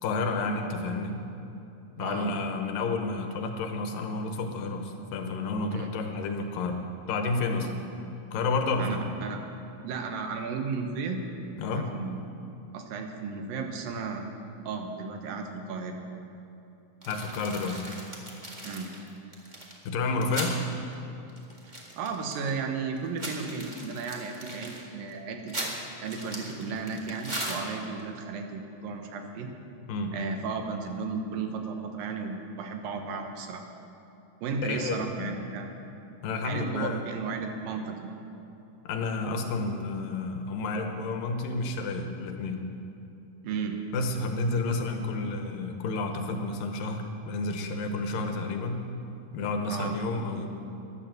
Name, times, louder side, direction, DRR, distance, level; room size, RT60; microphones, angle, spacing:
voice 1, 0.0-1.2 2.0-6.8 7.1-7.7 8.3-9.0 11.6-11.9 17.1-17.8 19.9-20.6 29.9-30.1 34.6-35.4 36.2-37.0 38.8-42.6 43.9-48.8 49.3-50.5, left 3 dB, 85° left, 5 dB, 2.9 m, -30 dB
voice 2, 8.8-9.4 9.8-11.2 11.7-12.2 12.7-14.2 14.7-16.0 18.6-18.9 22.0-25.7 26.0-29.5 30.1-33.6 34.4-35.7 36.4-38.1 43.4-43.8 49.7-50.0, right 5 dB, 90° right, 4 dB, 3.0 m, -34 dB
sound 1, 17.0-20.6 20.9-21.0 21.3-22.6 23.0-28.0, right 1 dB, 25° right, 1.0 m, -38 dB
12.5 x 11.0 x 7.7 m, 2.9 s
omnidirectional pair, 3.9 m